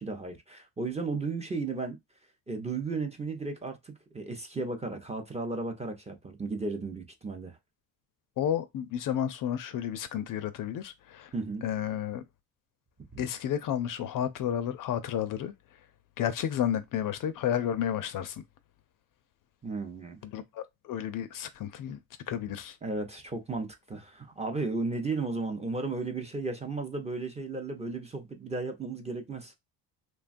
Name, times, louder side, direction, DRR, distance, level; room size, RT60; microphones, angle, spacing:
voice 1, 0.0-2.0 2.5-7.6 11.3-11.6 13.1-13.2 19.6-20.2 22.8-29.5, right 3 dB, 15° right, 0.5 m, -34 dB
voice 2, 8.4-11.3 11.6-12.2 13.2-15.5 16.2-18.4 20.2-22.0 22.3-22.8, left 10 dB, 50° left, 0.5 m, -31 dB
3.1 x 2.2 x 2.4 m
cardioid pair, 110°, 41 cm